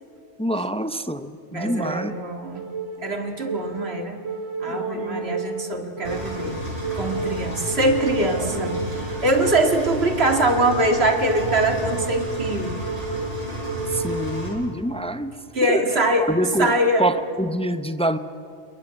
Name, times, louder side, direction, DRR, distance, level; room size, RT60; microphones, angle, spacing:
voice 1, 0.4-2.2 13.9-15.3 15.6-15.8 16.2-16.7 17.0-18.2, right 1 dB, 10° left, 11 dB, 0.3 m, -25 dB
voice 2, 1.5-2.6 3.0-4.2 4.6-6.6 6.9-12.7 15.5-16.3 16.6-17.1, right 1 dB, 50° right, 5 dB, 2.3 m, -23 dB
sound 1, 1.7-14.7, right 3 dB, 65° right, 3.1 m, -31 dB
Engine, 6.0-14.5, equal, 25° right, 5.4 m, -32 dB
27.5 x 21.5 x 8.8 m, 2.5 s
omnidirectional pair, 1.4 m